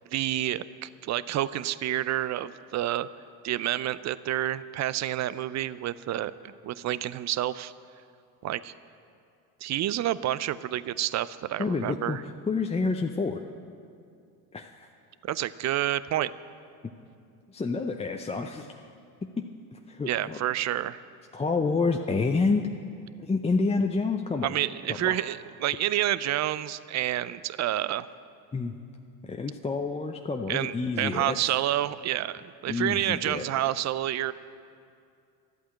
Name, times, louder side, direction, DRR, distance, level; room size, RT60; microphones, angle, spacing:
voice 1, 0.1-3.1 3.4-7.7 8.4-8.7 9.6-12.2 15.2-16.3 20.1-21.0 24.4-28.1 30.5-34.3, right 13 dB, 40° right, 17 dB, 0.5 m, -29 dB
voice 2, 11.6-13.4 14.5-14.9 17.5-18.7 19.4-20.4 21.3-22.7 23.2-24.5 25.0-25.2 28.5-28.7 29.2-31.5 32.7-33.5, left 4 dB, 15° left, 3 dB, 0.6 m, -28 dB
12.0 x 8.4 x 8.7 m, 2.4 s
hypercardioid pair, 75°, 43 cm